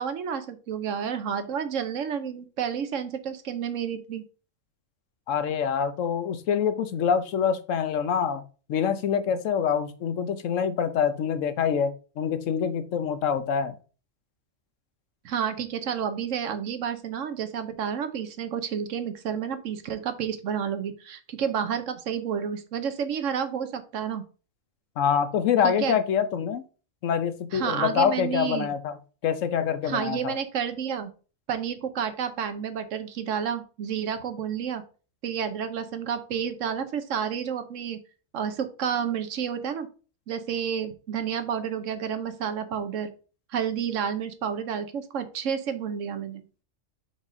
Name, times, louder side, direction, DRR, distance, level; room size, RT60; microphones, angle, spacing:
voice 1, 0.0-4.2 15.2-24.2 25.6-26.0 27.5-28.8 29.8-31.1 31.5-34.8 35.2-38.0 38.3-39.9 40.3-43.1 43.5-46.4, right 7 dB, 85° right, 9 dB, 1.2 m, -30 dB
voice 2, 5.3-8.4 8.7-13.8 25.0-26.6 27.0-29.0 29.2-30.4, left 7 dB, 90° left, 11 dB, 1.1 m, -25 dB
5.3 x 4.1 x 4.8 m, 0.36 s
omnidirectional pair, 1.3 m